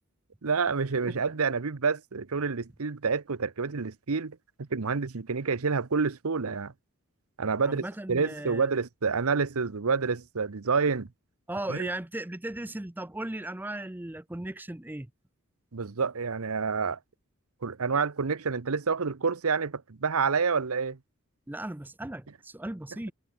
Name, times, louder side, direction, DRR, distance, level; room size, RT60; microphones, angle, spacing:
voice 1, 0.4-6.7 7.4-11.1 11.7-11.9 15.7-17.0 17.6-21.0, right 5 dB, 85° right, 0.9 m, -28 dB
voice 2, 7.6-8.7 11.5-15.1 21.5-23.1, right 1 dB, 10° right, 0.5 m, -37 dB
head